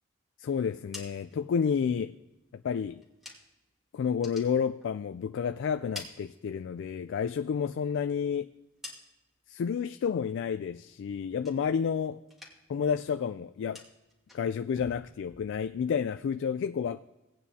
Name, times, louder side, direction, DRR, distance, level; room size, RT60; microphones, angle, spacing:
voice 1, 0.4-2.2 2.5-3.0 3.9-8.5 9.5-12.2 12.7-13.8 14.3-17.0, left 7 dB, 60° left, 0.3 m, -30 dB
sound 1, 0.6-3.7 4.0-5.4 5.7-7.0 7.3-9.5 9.8-10.3 10.6-12.0 12.2-12.8 13.1-16.0, left 2 dB, ahead, 1.7 m, -50 dB
18.0 x 8.7 x 2.8 m
head